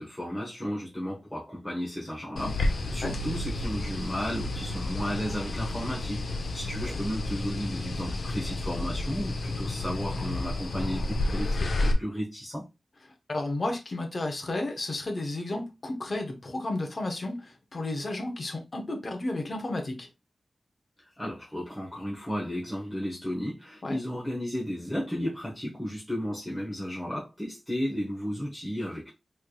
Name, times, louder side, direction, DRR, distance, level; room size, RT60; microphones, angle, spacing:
voice 1, 0.0-11.6 12.0-12.6 21.2-29.1, equal, 5° left, 1.2 m, -34 dB
sound 1, 2.4-11.9, left 2 dB, 75° left, 0.7 m, -31 dB
voice 2, 13.3-20.1 23.8-24.0, left 2 dB, 45° left, 0.9 m, -32 dB
4.4 x 3.2 x 2.3 m
wide cardioid pair, 105°, 0 cm